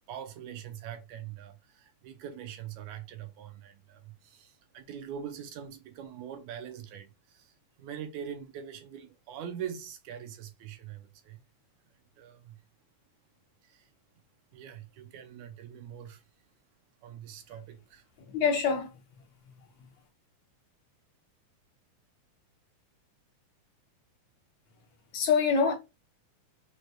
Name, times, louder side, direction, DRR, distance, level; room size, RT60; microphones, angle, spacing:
voice 1, 0.1-11.4 12.2-12.6 13.6-13.9 14.5-16.2 17.0-18.1, right 9 dB, 80° right, 1.9 m, -43 dB
voice 2, 18.3-19.0 25.1-25.8, left 6 dB, 75° left, 1.7 m, -25 dB
5.0 x 4.6 x 2.3 m
omnidirectional pair, 3.7 m